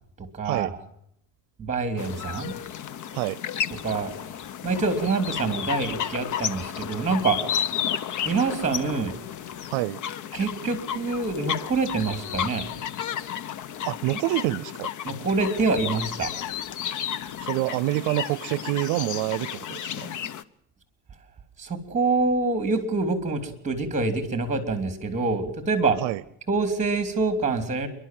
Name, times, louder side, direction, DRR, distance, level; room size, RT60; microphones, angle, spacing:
voice 1, 0.2-0.8 1.6-2.5 3.8-4.1 4.6-7.4 8.2-9.1 10.3-12.7 15.0-16.3 21.6-26.0 26.5-27.9, right 3 dB, 15° right, 8 dB, 3.3 m, -26 dB
sound 1, 2.0-20.4, left 9 dB, 45° left, 0.8 m, -32 dB
voice 2, 9.7-10.0 13.8-14.9 17.4-20.1 26.0-26.2, right 18 dB, 70° right, 20 dB, 0.7 m, -27 dB
29.0 x 12.0 x 7.7 m, 0.75 s
cardioid pair, 130°, 42 cm